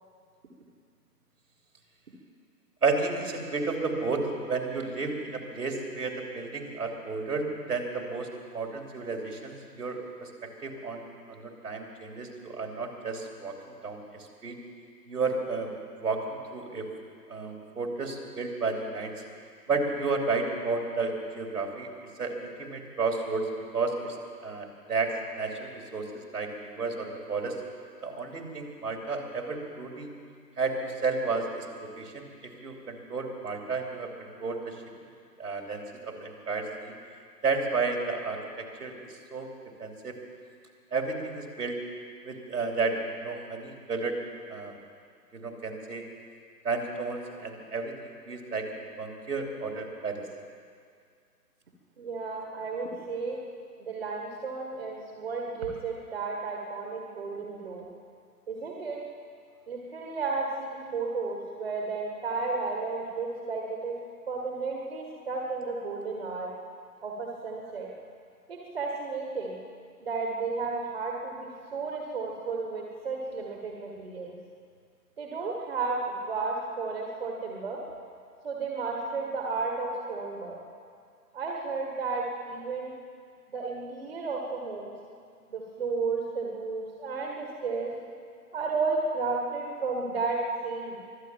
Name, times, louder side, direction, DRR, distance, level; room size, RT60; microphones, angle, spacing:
voice 1, 2.8-4.2 4.5-14.6 15.1-15.7 16.0-16.9 17.3-19.1 19.7-23.4 23.7-24.2 24.4-27.6 28.0-30.1 30.6-34.7 35.4-36.9 37.4-39.5 39.8-40.2 40.9-41.8 42.2-44.2 44.5-44.7 45.3-46.0 46.6-47.9 48.3-48.6 49.0-50.2, right 4 dB, 70° right, 2 dB, 3.1 m, -32 dB
voice 2, 52.0-53.4 53.8-57.9 58.5-59.0 59.7-63.9 64.3-66.5 67.0-67.9 68.5-69.6 70.0-74.4 75.2-77.8 78.4-80.6 81.3-83.0 83.5-84.9 85.5-87.9 88.5-91.0, right 4 dB, 40° right, 0 dB, 1.6 m, -33 dB
23.5 x 8.4 x 7.2 m, 2.2 s
figure-of-eight pair, 150°, 48 cm